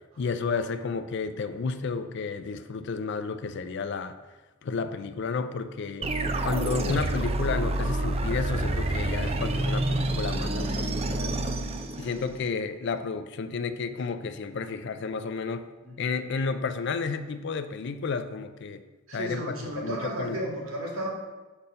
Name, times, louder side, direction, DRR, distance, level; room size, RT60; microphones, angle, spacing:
voice 1, 0.2-4.2 4.6-6.1 6.4-11.3 12.0-15.7 16.0-18.8 19.1-20.5, left 4 dB, 55° left, 10 dB, 0.4 m, -32 dB
sound 1, 6.0-12.5, right 1 dB, 30° right, 0.4 m, -28 dB
voice 2, 19.1-21.1, right 1 dB, 85° right, -2 dB, 1.8 m, -33 dB
6.9 x 4.3 x 5.1 m, 1.2 s
head